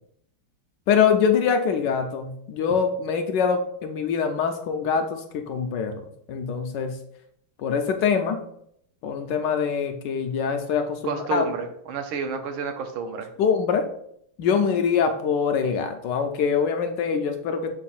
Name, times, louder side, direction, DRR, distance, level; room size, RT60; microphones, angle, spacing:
voice 1, 0.9-5.9 6.3-7.0 7.6-8.4 9.0-11.5 13.4-13.9 14.4-17.7, left 6 dB, 75° left, 6 dB, 1.0 m, -24 dB
voice 2, 11.0-13.3, right 5 dB, 80° right, 7 dB, 1.6 m, -30 dB
7.2 x 2.5 x 5.5 m, 0.71 s
omnidirectional pair, 2.3 m